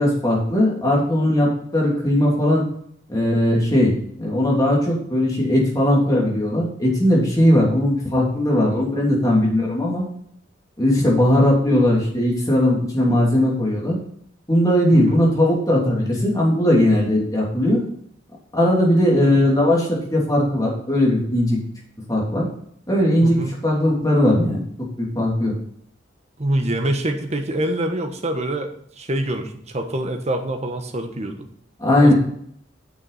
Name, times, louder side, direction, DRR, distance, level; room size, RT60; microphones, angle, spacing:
voice 1, 0.0-2.6 3.1-10.0 10.8-14.0 14.5-17.8 18.5-21.6 22.1-22.4 22.9-23.4 23.6-24.6 25.0-25.5 31.8-32.1, left 1 dB, 20° left, -3 dB, 2.9 m, -18 dB
voice 2, 14.9-15.2 19.1-19.4 23.2-23.5 26.4-31.5 32.0-32.1, right 1 dB, 35° right, 5 dB, 1.2 m, -25 dB
9.3 x 6.4 x 4.1 m, 0.67 s
head